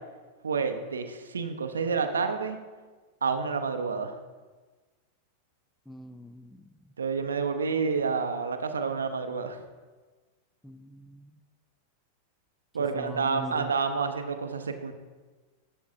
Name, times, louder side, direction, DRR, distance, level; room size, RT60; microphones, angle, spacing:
voice 1, 0.4-2.6 3.2-4.1 7.0-9.6 12.7-14.9, right 5 dB, 70° right, 7 dB, 0.6 m, -29 dB
voice 2, 5.9-6.6 10.6-11.4 12.9-13.7, equal, 5° left, 10 dB, 0.4 m, -42 dB
12.0 x 7.1 x 2.6 m, 1.3 s
figure-of-eight pair, 90°, 0 cm